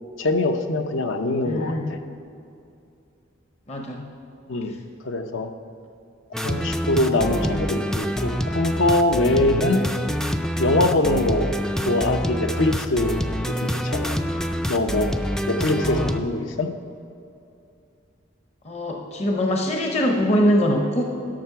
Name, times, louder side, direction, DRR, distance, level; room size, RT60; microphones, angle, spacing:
voice 1, 0.2-2.0 4.5-4.7 5.0-5.5 6.4-9.9 10.6-11.5 11.8-13.2 13.5-14.2 14.7-15.1 15.5-16.7, left 2 dB, 70° left, 7 dB, 0.7 m, -23 dB
voice 2, 1.4-2.0 3.7-4.0 7.0-7.6 15.8-16.2 18.6-21.0, equal, 35° left, 2 dB, 0.7 m, -23 dB
sound 1, 6.3-16.2, equal, 5° left, 0.3 m, -26 dB
12.5 x 5.8 x 5.7 m, 2.6 s
head